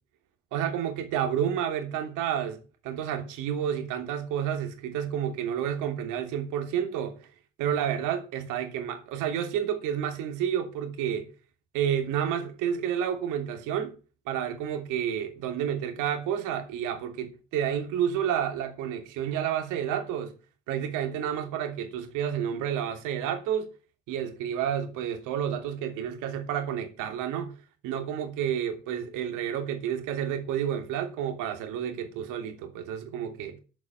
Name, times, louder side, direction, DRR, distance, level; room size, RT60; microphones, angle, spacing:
voice 1, 0.5-7.2 7.6-11.3 11.7-13.9 14.3-20.3 20.7-23.7 24.1-27.5 27.8-33.6, right 9 dB, 80° right, 3.1 m, -30 dB
13.0 x 6.3 x 9.4 m
hypercardioid pair, 55°, 31 cm